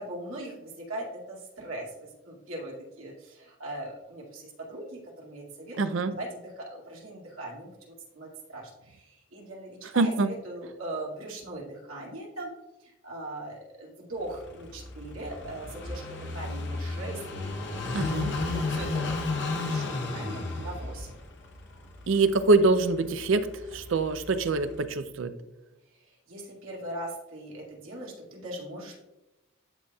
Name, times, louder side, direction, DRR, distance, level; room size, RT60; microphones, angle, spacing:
voice 1, 0.0-12.5 12.8-21.1 26.0-29.0, right 1 dB, 90° right, -3 dB, 2.2 m, -40 dB
voice 2, 5.8-6.1 10.0-10.3 17.9-18.3 22.1-23.5 23.7-25.3, right 3 dB, 70° right, 11 dB, 0.5 m, -24 dB
Car passing by / Idling, 14.2-24.9, left 3 dB, 55° left, 0.8 m, -34 dB
12.5 x 4.2 x 2.3 m, 0.98 s
head